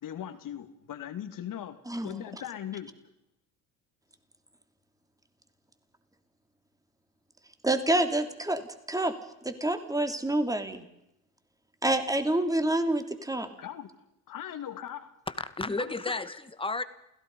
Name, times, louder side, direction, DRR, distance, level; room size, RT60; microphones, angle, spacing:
voice 1, 0.0-1.8 2.0-2.9 13.6-13.9 14.3-15.1 15.8-16.2, left 10 dB, 55° left, 9 dB, 2.7 m, -39 dB
voice 2, 1.9-2.4 7.6-9.1 9.4-10.8 11.8-13.5, right 1 dB, 10° right, 8 dB, 3.0 m, -28 dB
voice 3, 15.3-16.8, left 3 dB, 15° left, 12 dB, 1.9 m, -32 dB
28.5 x 16.5 x 5.6 m, 0.83 s
supercardioid pair, 80°, 39 cm